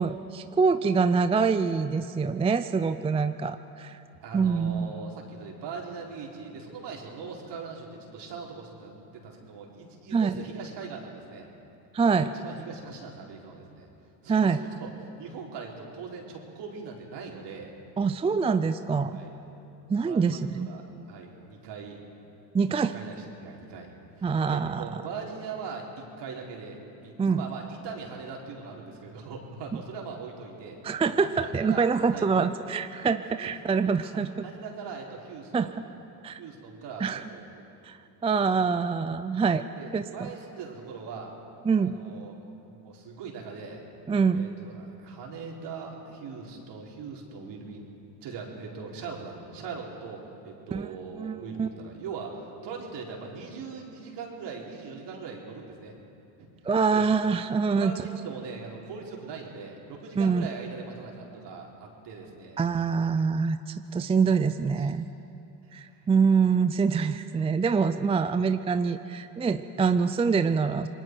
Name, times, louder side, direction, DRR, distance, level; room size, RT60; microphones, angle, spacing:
voice 1, 0.0-4.0 4.3-4.9 10.1-10.4 11.9-12.3 14.3-14.6 18.0-19.2 19.9-20.7 22.5-22.9 24.2-25.0 27.2-27.5 30.8-34.5 35.5-35.7 36.2-36.4 37.0-37.2 37.8-39.6 39.9-40.0 41.7-41.9 44.1-44.5 50.7-50.9 51.2-51.7 56.6-57.9 60.2-60.5 62.6-65.1 65.7-70.9, right 5 dB, 15° right, 10 dB, 0.4 m, -25 dB
voice 2, 4.2-11.5 12.1-13.9 14.2-14.9 15.2-17.7 19.1-19.4 20.0-22.0 22.9-23.9 24.2-30.8 31.2-32.3 34.4-35.8 36.4-37.6 39.8-41.3 41.8-43.8 44.3-47.9 48.2-56.0 56.4-56.5 56.9-57.0 57.8-62.6 64.8-64.9 65.6-66.0, right 5 dB, 55° right, -1 dB, 4.1 m, -41 dB
28.0 x 21.0 x 4.6 m, 2.8 s
supercardioid pair, 85°, 49 cm